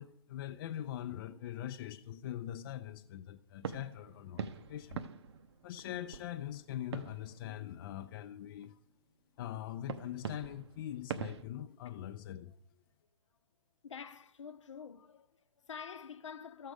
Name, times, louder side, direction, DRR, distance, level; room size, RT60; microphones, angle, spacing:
voice 1, 0.0-5.1 5.6-8.8 9.4-12.5, left 12 dB, 45° left, 0.5 m, -42 dB
sound 1, 3.6-8.1 8.6-8.7 9.9-11.4, right 7 dB, 60° right, 0.8 m, -44 dB
voice 2, 13.8-16.7, left 7 dB, 80° left, 0.9 m, -47 dB
14.5 x 6.6 x 4.9 m
hypercardioid pair, 135°, 15 cm